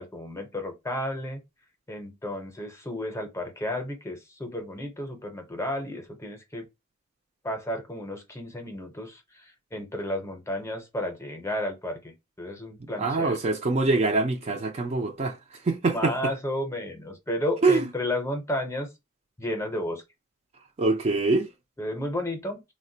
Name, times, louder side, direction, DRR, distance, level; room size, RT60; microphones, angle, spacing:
voice 1, 0.0-1.4 1.9-6.7 7.4-13.4 15.9-18.9 19.4-20.0 21.8-22.6, left 1 dB, 15° left, 0.7 m, -32 dB
voice 2, 13.0-16.3 17.6-17.9 20.8-21.5, right 3 dB, 30° right, 0.4 m, -24 dB
3.5 x 2.1 x 2.6 m
head